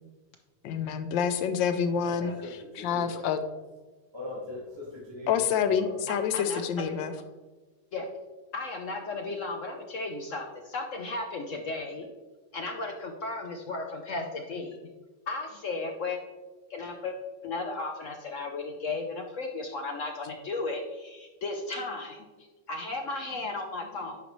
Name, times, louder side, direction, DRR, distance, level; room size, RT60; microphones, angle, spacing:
voice 1, 0.6-3.4 5.3-7.1, left 7 dB, 85° left, 9 dB, 1.4 m, -28 dB
voice 2, 1.9-2.5 2.8-3.2 4.1-5.9, left 2 dB, 15° right, -5 dB, 1.7 m, -40 dB
voice 3, 6.1-6.6 7.0-7.1 7.9-8.1 8.5-12.1 12.5-14.8 15.3-16.2 16.7-17.2 17.4-22.3 22.7-24.2, left 3 dB, 60° left, 3 dB, 0.8 m, -35 dB
10.0 x 5.2 x 3.0 m, 1.2 s
omnidirectional pair, 2.0 m